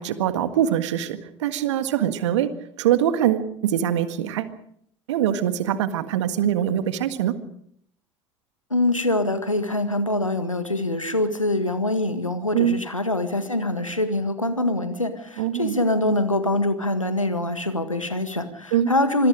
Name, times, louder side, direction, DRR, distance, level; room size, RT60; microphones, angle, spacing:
voice 1, 0.0-4.5 5.1-7.4 12.5-12.8 15.4-15.8 18.7-18.9, right 10 dB, 65° right, 11 dB, 1.7 m, -23 dB
voice 2, 8.7-19.3, left 1 dB, 90° left, 10 dB, 1.7 m, -24 dB
26.5 x 21.0 x 5.0 m, 0.69 s
figure-of-eight pair, 65°, 16 cm